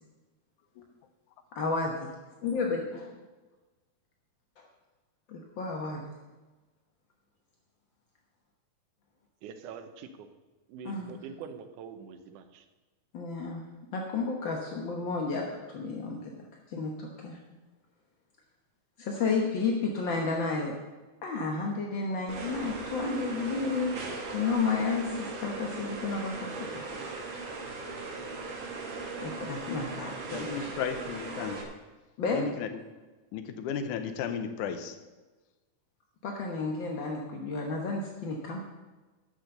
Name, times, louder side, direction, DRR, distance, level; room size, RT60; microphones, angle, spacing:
voice 1, 1.5-2.1 2.4-3.0 4.6-4.7 5.3-6.0 10.8-11.2 13.1-13.7 13.9-16.3 16.7-17.4 19.0-20.7 21.2-24.0 24.3-26.8 29.2-30.7 32.2-32.4 36.2-38.6, left 4 dB, 60° left, 0 dB, 1.2 m, -32 dB
voice 2, 9.4-10.3 10.7-12.6, right 7 dB, 80° right, 7 dB, 2.3 m, -44 dB
sound 1, 22.3-31.6, right 3 dB, 45° right, 2.0 m, -38 dB
voice 3, 30.3-31.7 32.3-32.7 33.3-35.0, left 7 dB, 80° left, 9 dB, 2.3 m, -34 dB
13.0 x 6.4 x 6.6 m, 1.2 s
omnidirectional pair, 3.6 m